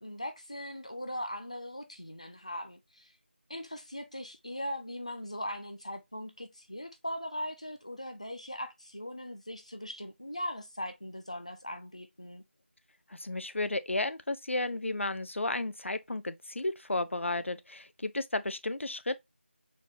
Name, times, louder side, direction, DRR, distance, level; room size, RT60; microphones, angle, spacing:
voice 1, 0.0-3.1 3.5-12.4, equal, 35° left, 0.4 m, -40 dB
voice 2, 13.2-19.2, left 2 dB, 90° left, 0.5 m, -33 dB
4.1 x 3.2 x 2.4 m
figure-of-eight pair, 180°, 7 cm